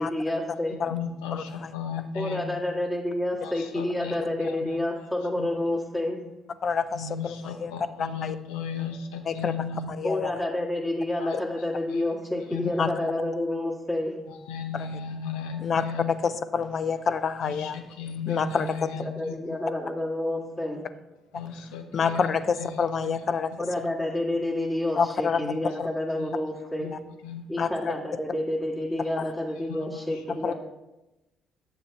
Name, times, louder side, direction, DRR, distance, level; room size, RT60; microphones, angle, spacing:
voice 1, 0.0-0.8 2.1-6.2 10.0-14.1 19.0-20.8 23.6-26.9 27.5-30.5, left 1 dB, 20° left, -3 dB, 1.8 m, -29 dB
voice 2, 0.7-2.5 3.4-4.8 5.4-5.5 6.9-9.9 11.2-11.4 11.9-12.0 12.5-12.9 14.3-16.1 17.4-19.6 21.3-22.3 22.6-22.7 23.0-23.2 23.8-23.9 25.4-25.6 26.2-26.3 26.8-26.9 27.2-27.5 29.7-30.0 30.3-30.5, left 6 dB, 80° left, 6 dB, 0.7 m, -35 dB
voice 3, 1.3-1.7 6.6-7.7 8.0-8.4 9.2-9.5 9.9-10.3 12.8-12.9 14.7-15.0 15.6-17.8 18.3-18.9 21.3-21.4 21.9-23.5 24.9-25.4 25.8-25.9 27.6-27.9 29.2-29.3 30.4-30.5, left 6 dB, 50° left, 13 dB, 0.5 m, -28 dB
8.2 x 7.0 x 3.4 m, 0.98 s
hypercardioid pair, 50°, 0 cm